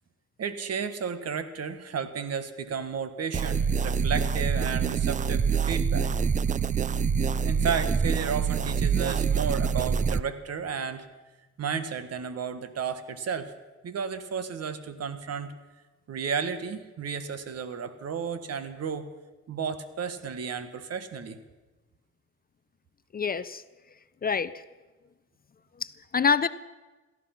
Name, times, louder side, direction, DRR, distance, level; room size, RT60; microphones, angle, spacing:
voice 1, 0.4-6.1 7.4-11.1 11.6-13.5 13.8-15.5 16.1-19.1 19.5-21.4, right 6 dB, 55° right, 12 dB, 1.4 m, -33 dB
sound 1, 3.3-10.2, right 6 dB, 25° right, 0.4 m, -26 dB
voice 2, 23.1-23.6 24.2-24.6 25.8-26.5, left 6 dB, 30° left, 15 dB, 0.6 m, -26 dB
17.0 x 14.0 x 5.8 m, 1.2 s
cardioid pair, 90°, 30 cm